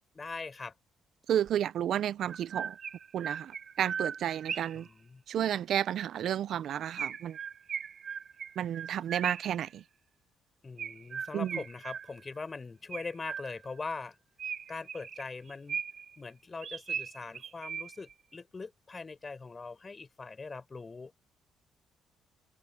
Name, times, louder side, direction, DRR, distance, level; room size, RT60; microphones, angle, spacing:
voice 1, 0.1-0.7 4.7-5.2 10.6-14.2 14.7-15.8 16.2-21.1, left 4 dB, 30° left, 4.3 m, -42 dB
voice 2, 1.3-2.8 3.1-4.9 5.3-7.4 8.6-9.8 11.3-11.6, right 10 dB, 70° right, 0.4 m, -31 dB
Chirp tweet, 1.5-1.6 2.2-4.9 7.0-9.6 10.8-12.4 12.9-13.8 14.4-16.1 16.6-18.1, right 7 dB, 55° right, 1.8 m, -39 dB
cardioid pair, 90°, 0 cm